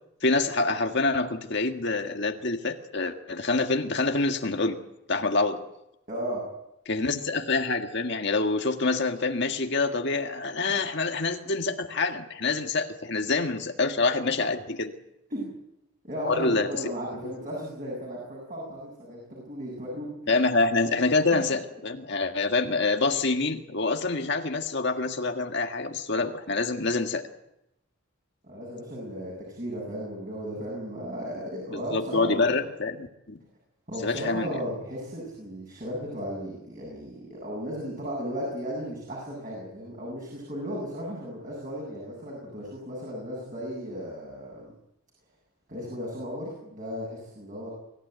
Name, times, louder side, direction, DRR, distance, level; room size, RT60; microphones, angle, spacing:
voice 1, 0.2-4.8 5.1-5.6 6.9-14.9 16.2-16.7 17.2-17.3 20.3-27.2 31.9-33.4 34.0-34.6, left 3 dB, 55° left, 5 dB, 1.7 m, -26 dB
voice 2, 6.1-6.4 15.3-15.5 16.0-20.4 21.3-21.4 28.4-32.6 33.9-44.7 45.7-47.7, equal, 40° right, -3 dB, 7.9 m, -35 dB
25.0 x 15.5 x 9.4 m, 0.86 s
head